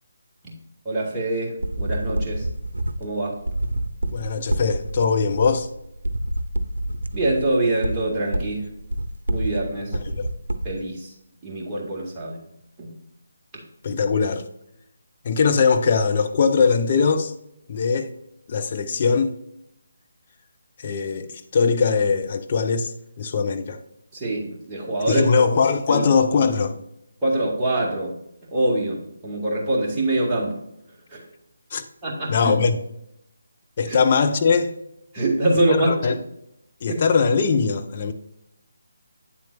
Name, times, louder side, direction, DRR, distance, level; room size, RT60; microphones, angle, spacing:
voice 1, 0.9-2.5 3.0-3.4 7.1-8.6 9.3-9.9 10.6-11.1 11.4-12.4 12.8-12.9 24.1-25.2 25.9-26.1 27.2-28.1 28.5-29.0 29.2-30.6 31.1-31.2 32.0-32.6 33.9-34.0 35.1-36.2 36.9-37.0, right 1 dB, 15° right, 2.0 m, -24 dB
sound 1, 1.6-10.8, right 1 dB, 75° right, 0.7 m, -28 dB
voice 2, 4.1-5.7 9.9-10.3 13.8-14.4 15.2-17.3 17.7-18.1 18.5-19.4 20.8-22.9 23.2-23.8 25.1-26.7 31.7-31.8 32.3-32.8 33.8-34.7 35.7-36.1 36.8-38.1, left 5 dB, 35° left, 0.7 m, -21 dB
8.9 x 7.4 x 2.5 m
figure-of-eight pair, 150°, 0 cm